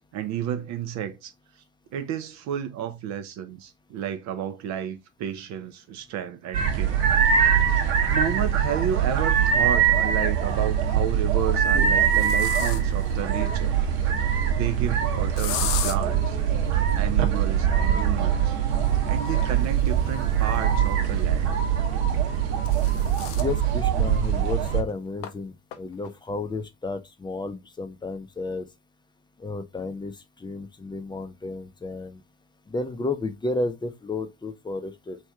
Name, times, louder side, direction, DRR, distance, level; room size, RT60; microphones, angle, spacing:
voice 1, 0.0-1.6 1.9-7.3 8.1-13.8 14.3-16.4 17.0-18.6 19.1-21.5, right 9 dB, 50° right, 0.5 m, -32 dB
sound 1, 6.5-24.8, right 8 dB, 70° right, 0.9 m, -23 dB
sound 2, 9.0-9.1 10.5-10.9 11.5-13.1 15.4-16.0 18.6-21.2 22.2-23.5 24.0-24.1 24.4-24.5 25.2-25.3 25.7-26.1, left 10 dB, 65° left, 0.7 m, -36 dB
voice 2, 23.3-28.7 29.4-32.2 32.7-35.2, left 3 dB, 10° left, 0.6 m, -32 dB
3.2 x 2.6 x 3.3 m
hypercardioid pair, 65°, 37 cm